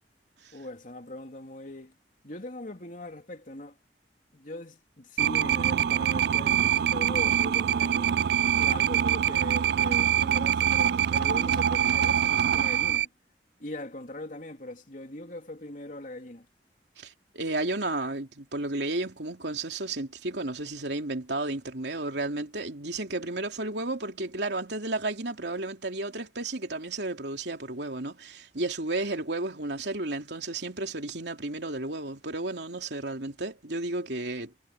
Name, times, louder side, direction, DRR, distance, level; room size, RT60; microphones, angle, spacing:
voice 1, 0.5-1.9 2.2-3.8 4.3-8.2 8.6-13.1 13.6-16.5, left 1 dB, 45° left, 3.3 m, -41 dB
sound 1, 5.2-13.1, right 9 dB, 65° right, 0.3 m, -24 dB
voice 2, 17.0-34.5, right 2 dB, 80° right, 3.0 m, -33 dB
head